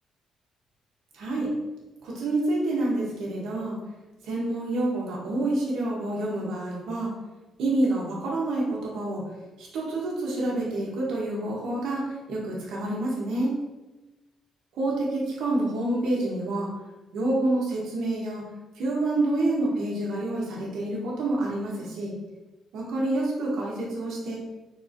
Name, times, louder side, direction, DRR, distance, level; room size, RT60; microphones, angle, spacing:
voice 1, 1.1-1.5 2.0-3.8 4.2-7.1 7.6-9.2 9.6-13.5 14.7-16.7 17.1-18.4 18.7-22.1 22.7-24.4, right 2 dB, 80° right, -4 dB, 0.9 m, -28 dB
3.6 x 2.4 x 2.5 m, 1.1 s
cardioid pair, 90°, 0 cm